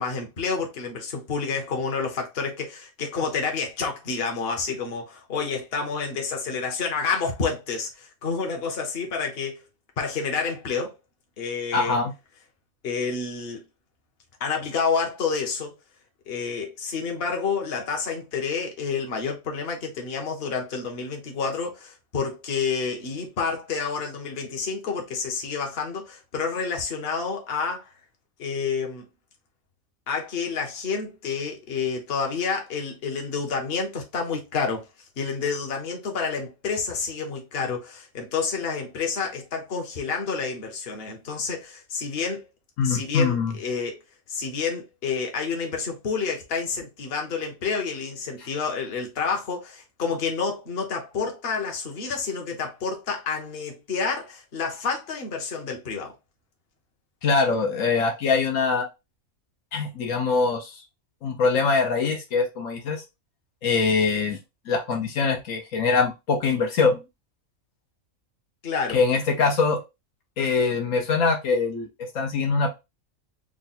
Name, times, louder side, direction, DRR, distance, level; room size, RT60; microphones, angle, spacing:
voice 1, 0.0-9.6 10.0-10.9 11.4-12.0 12.8-13.6 14.4-15.7 16.3-27.9 28.4-29.1 30.1-34.8 35.2-42.5 42.8-44.0 44.3-56.1 68.6-69.0, left 5 dB, 50° left, 1.1 m, -29 dB
voice 2, 11.7-12.1 42.8-43.5 57.2-58.9 59.7-60.8 61.2-63.0 63.6-64.4 64.7-67.0 68.9-69.8 70.4-72.7, left 4 dB, 75° left, 1.2 m, -23 dB
3.6 x 2.3 x 4.0 m
omnidirectional pair, 1.4 m